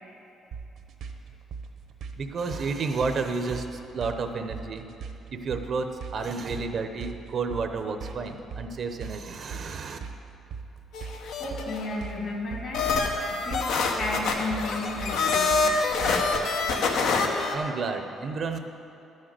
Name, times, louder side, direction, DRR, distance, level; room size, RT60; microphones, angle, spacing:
sound 1, 0.5-16.4, right 5 dB, 65° right, 1.0 m, -40 dB
voice 1, 2.2-4.9 5.3-10.0 17.5-18.6, right 4 dB, 45° right, 7 dB, 0.8 m, -31 dB
sound 2, 10.9-11.9 12.7-17.5, left 4 dB, 80° left, 1.1 m, -26 dB
voice 2, 11.4-12.9 13.4-16.2, left 2 dB, 60° left, -2 dB, 2.9 m, -34 dB
12.0 x 6.5 x 7.7 m, 2.9 s
cardioid pair, 130°, 0 cm